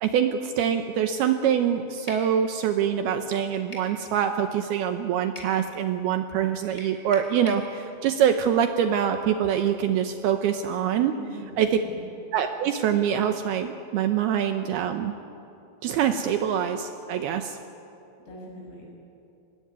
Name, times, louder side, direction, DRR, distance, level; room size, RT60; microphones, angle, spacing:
voice 1, 0.0-11.1 11.6-11.8 12.3-15.1 15.8-17.6, right 9 dB, 75° right, 7 dB, 2.5 m, -24 dB
sound 1, 2.1-2.3 3.7-3.9 5.4-5.6 6.8-7.7, left 1 dB, 15° left, 3.8 m, -41 dB
voice 2, 11.1-12.0 18.3-18.8, right 1 dB, 65° left, -1 dB, 8.5 m, -41 dB
25.5 x 20.5 x 9.5 m, 2.9 s
omnidirectional pair, 5.2 m